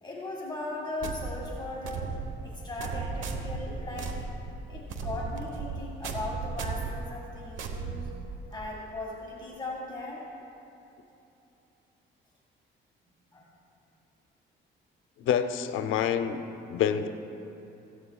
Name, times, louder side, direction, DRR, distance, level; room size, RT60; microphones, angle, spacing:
voice 1, 0.0-2.1 2.4-4.2 4.7-8.2 8.5-10.2 13.3-13.5, left 2 dB, 20° left, -3 dB, 1.9 m, -38 dB
sound 1, 1.0-8.7, right 4 dB, 75° right, 1.1 m, -36 dB
voice 2, 15.2-16.4 16.7-17.1, left 8 dB, 85° left, 9 dB, 0.7 m, -27 dB
16.0 x 15.5 x 2.4 m, 2.9 s
cardioid pair, 90°, 20 cm